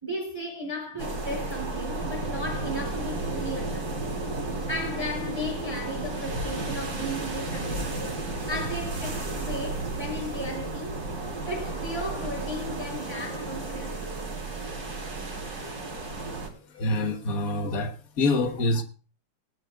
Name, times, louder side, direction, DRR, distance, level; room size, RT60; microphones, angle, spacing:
voice 1, 0.0-4.2 4.5-11.0 11.5-14.3 17.1-17.2, left 1 dB, 10° right, 3.2 m, -35 dB
sound 1, 1.0-16.5, right 2 dB, 30° right, 3.9 m, -33 dB
voice 2, 16.2-18.8, left 2 dB, 45° left, 1.2 m, -27 dB
23.0 x 12.0 x 2.4 m
omnidirectional pair, 3.4 m